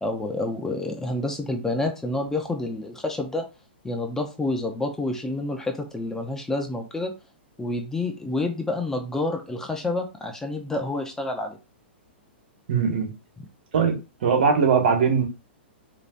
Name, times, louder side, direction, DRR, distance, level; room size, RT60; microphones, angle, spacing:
voice 1, 0.0-3.4 3.8-7.1 7.6-11.6, left 2 dB, 10° left, 0.8 m, -28 dB
voice 2, 12.7-13.1 13.7-13.9 14.2-15.2, right 6 dB, 65° right, 1.6 m, -20 dB
5.0 x 3.0 x 2.6 m
hypercardioid pair, 125°, 6 cm